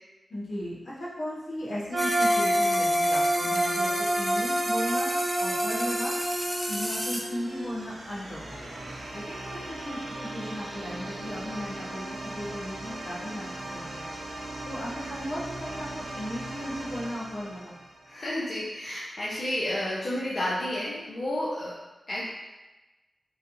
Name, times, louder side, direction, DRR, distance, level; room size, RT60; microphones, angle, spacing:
voice 1, 0.3-5.1 5.4-6.1 6.4-14.0 14.6-17.7 21.6-21.7, equal, 75° left, -7 dB, 1.0 m, -36 dB
sound 1, 1.9-7.8, right 1 dB, 45° right, 1.3 m, -27 dB
sound 2, 2.0-7.2, equal, ahead, 0.5 m, -33 dB
sound 3, 4.6-18.4, right 1 dB, 80° right, 0.5 m, -40 dB
voice 2, 18.1-21.7 22.1-22.3, left 1 dB, 50° left, -8 dB, 0.7 m, -31 dB
3.1 x 2.8 x 2.6 m, 1.1 s
wide cardioid pair, 100°, 0 cm